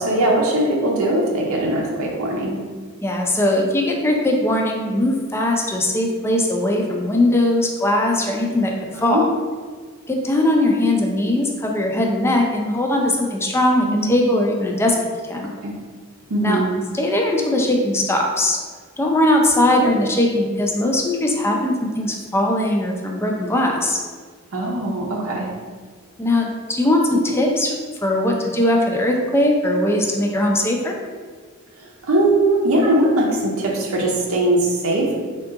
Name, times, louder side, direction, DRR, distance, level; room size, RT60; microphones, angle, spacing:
voice 1, 0.0-2.6 8.9-9.2 13.8-14.1 15.6-15.7 16.3-16.7 24.5-25.5 31.8-35.2, right 1 dB, 85° right, -2 dB, 0.6 m, -20 dB
voice 2, 3.0-9.2 10.1-15.0 15.3-15.5 16.4-16.6 16.9-18.6 19.0-24.0 26.2-27.7 28.0-30.9, left 1 dB, 10° left, 0 dB, 0.4 m, -20 dB
3.6 x 2.4 x 3.8 m, 1.5 s
head